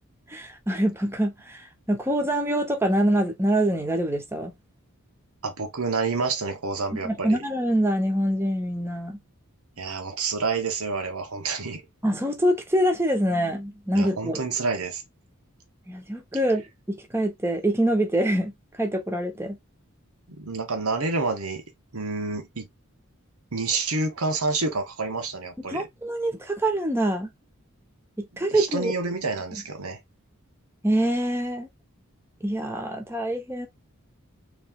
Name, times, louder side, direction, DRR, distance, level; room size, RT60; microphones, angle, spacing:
voice 1, 0.3-1.6 1.9-4.5 7.0-9.2 12.0-14.4 15.9-18.5 18.8-19.6 25.7-27.3 28.2-28.9 30.8-31.7 32.4-33.7, right 1 dB, 10° right, 0.9 m, -25 dB
voice 2, 5.4-7.4 9.8-11.8 13.9-15.0 20.4-21.6 21.9-22.7 23.5-25.9 28.3-30.0, right 4 dB, 85° right, 1.1 m, -28 dB
3.4 x 3.2 x 3.5 m
head